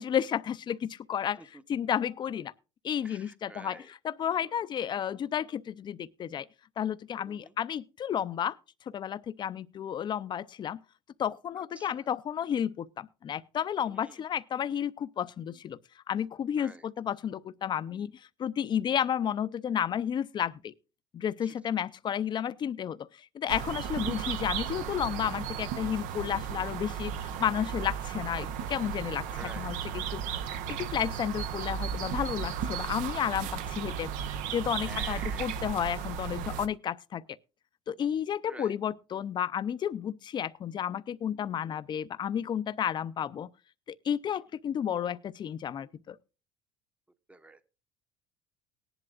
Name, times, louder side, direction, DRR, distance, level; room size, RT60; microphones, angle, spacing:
voice 1, 0.0-2.5 2.8-6.5 6.8-8.6 8.9-10.8 11.2-15.8 16.1-18.1 18.4-20.7 21.1-29.3 29.6-30.2 30.5-34.1 34.5-37.2 37.9-43.5 44.0-46.2, left 9 dB, 35° left, 0.5 m, -32 dB
voice 2, 3.0-3.9 7.3-7.6 11.6-12.1 13.9-14.2 16.6-16.9 21.4-21.5 29.3-30.1 34.8-35.5 38.4-38.7 47.3-47.6, right 2 dB, 10° right, 0.8 m, -49 dB
sound 1, 23.5-36.7, right 8 dB, 70° right, 0.8 m, -35 dB
18.5 x 11.0 x 2.5 m
cardioid pair, 120°, 14 cm